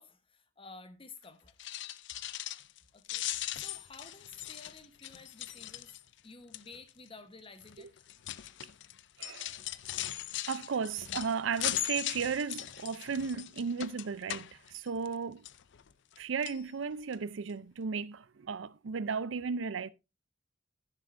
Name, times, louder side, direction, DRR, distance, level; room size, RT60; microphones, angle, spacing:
voice 1, 0.0-1.6 2.9-3.2 3.5-5.9 6.2-7.9, left 4 dB, 30° left, 1.1 m, -52 dB
sound 1, 1.5-2.8 3.0-6.2 6.5-6.9 7.6-15.1 15.5-16.2 16.4-16.6 17.1-17.2 17.5-17.6, left 14 dB, 65° left, 0.5 m, -39 dB
voice 2, 9.2-9.6 10.4-15.5 16.2-19.9, right 5 dB, 75° right, 0.5 m, -35 dB
11.0 x 10.0 x 2.6 m
head